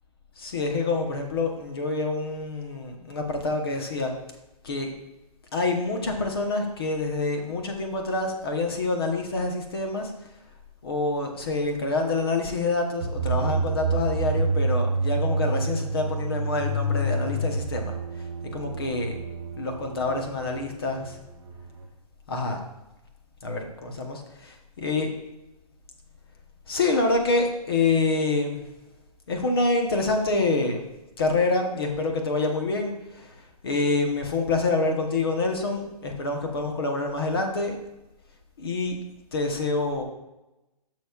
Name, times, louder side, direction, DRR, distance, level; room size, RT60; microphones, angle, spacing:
voice 1, 0.4-4.1 4.6-4.9 5.5-10.1 10.8-18.3 18.5-19.2 19.6-21.2 22.3-22.6 23.4-25.1 26.7-28.6 29.3-30.8 31.2-37.8 38.6-39.0 39.3-40.0, left 3 dB, 35° left, 3 dB, 1.0 m, -27 dB
sound 1, 13.0-21.8, right 2 dB, 45° right, 1.0 m, -28 dB
11.0 x 6.2 x 2.4 m, 0.98 s
hypercardioid pair, 180°, 20 cm